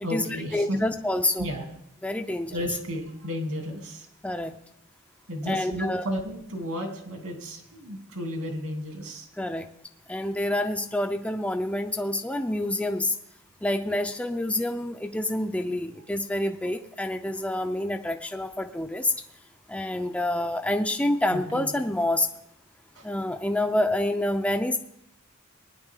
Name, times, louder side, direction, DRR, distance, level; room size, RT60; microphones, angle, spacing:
voice 1, 0.0-0.8 1.4-1.7 2.5-4.1 4.3-4.5 5.3-9.3 21.3-21.8 22.9-23.1, equal, 75° right, 2 dB, 2.9 m, -33 dB
voice 2, 0.5-1.5 2.0-2.5 4.2-4.5 5.5-6.1 9.4-9.7 10.1-13.2 13.6-19.1 19.7-22.3 23.0-24.8, left 1 dB, 5° left, 5 dB, 0.5 m, -27 dB
20.0 x 9.9 x 3.7 m, 0.76 s
head